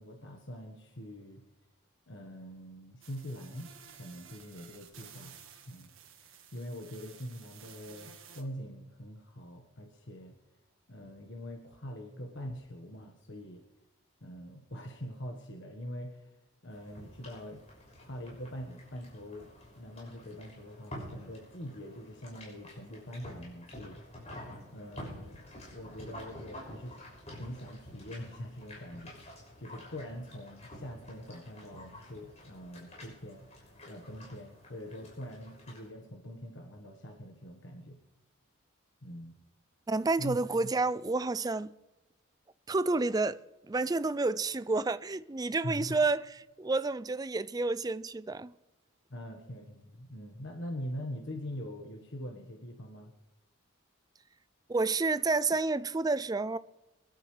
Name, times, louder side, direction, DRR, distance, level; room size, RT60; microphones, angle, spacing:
voice 1, 0.0-1.4 2.1-5.3 5.7-5.9 6.2-10.4 10.9-13.6 14.2-16.3 16.6-17.6 18.0-19.5 19.8-24.0 24.7-27.0 27.3-33.5 33.8-38.0 39.0-39.3 40.2-40.4 45.6-46.0 49.1-53.1, equal, 60° left, 1.5 m, -43 dB
sound 1, 3.0-8.4, right 7 dB, 70° right, 1.7 m, -54 dB
sound 2, 16.7-35.9, equal, 30° left, 6.2 m, -49 dB
voice 2, 39.9-41.7 42.7-43.4 43.7-48.5 54.7-56.6, right 3 dB, 20° right, 0.4 m, -30 dB
24.0 x 12.0 x 3.3 m
head